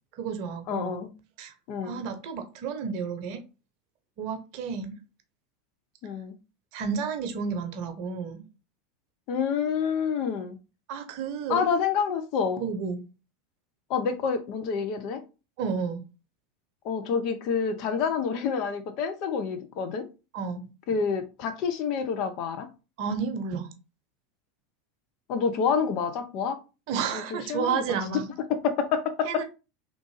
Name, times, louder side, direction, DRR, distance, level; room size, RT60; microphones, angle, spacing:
voice 1, 0.1-1.0 1.4-1.5 1.8-3.4 4.2-5.0 6.7-8.5 10.9-11.7 12.6-13.0 15.6-16.0 20.3-20.7 23.0-23.7 26.9-28.3 29.2-29.4, right 6 dB, 55° right, 0.7 m, -31 dB
voice 2, 0.7-1.1 1.7-2.0 6.0-6.4 9.3-10.6 11.5-12.6 13.9-15.2 16.8-20.1 20.9-22.7 25.3-26.6 27.1-28.0 28.5-29.4, left 6 dB, 50° left, 0.6 m, -28 dB
3.6 x 2.5 x 3.1 m
hypercardioid pair, 85°, 0 cm